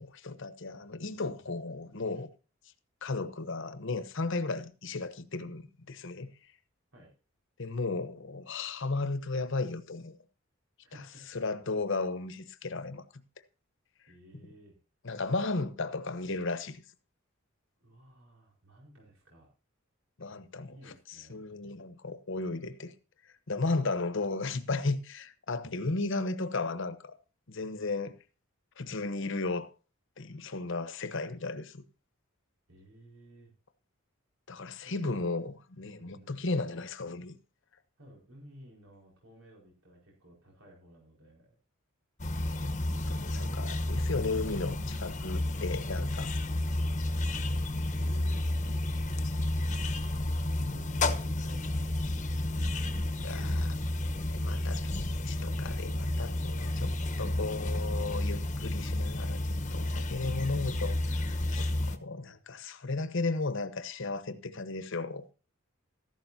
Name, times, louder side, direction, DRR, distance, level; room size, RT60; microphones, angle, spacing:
voice 1, 0.0-2.3 3.0-6.3 7.6-10.2 11.3-13.2 15.0-16.8 20.2-22.9 23.5-27.1 27.5-28.1 28.8-29.7 30.2-31.8 34.5-37.4 42.4-42.7 43.1-46.3 53.2-53.8 54.3-56.9 57.2-65.2, left 3 dB, 60° left, 1.0 m, -35 dB
voice 2, 1.1-1.9 6.9-7.1 10.8-11.4 14.1-14.7 17.8-19.5 20.6-21.4 32.7-33.5 35.0-35.3 36.0-36.5 38.0-41.5 47.7-49.2 50.2-51.9 52.4-53.7 56.8-57.9 59.7-60.1, equal, 85° right, 4.9 m, -56 dB
sound 1, 42.2-62.0, left 1 dB, 35° left, 1.0 m, -31 dB
14.5 x 12.0 x 2.8 m
head